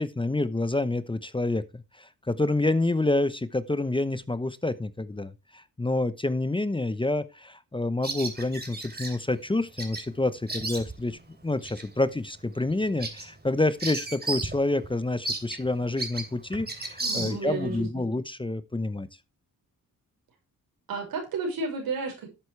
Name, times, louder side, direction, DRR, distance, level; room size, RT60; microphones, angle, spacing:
voice 1, 0.0-11.2 11.4-19.1, left 2 dB, 15° left, 0.9 m, -28 dB
Bird vocalization bird call bird song, 8.0-9.2 9.8-10.1 10.3-11.1 11.6-11.8 12.3-12.4 12.7-14.6 14.8-14.9 15.2-17.7, right 2 dB, 30° right, 3.0 m, -34 dB
voice 2, 17.0-18.0 20.9-22.3, right 4 dB, 90° right, 5.6 m, -32 dB
11.5 x 8.2 x 3.3 m
cardioid pair, 70°, 35 cm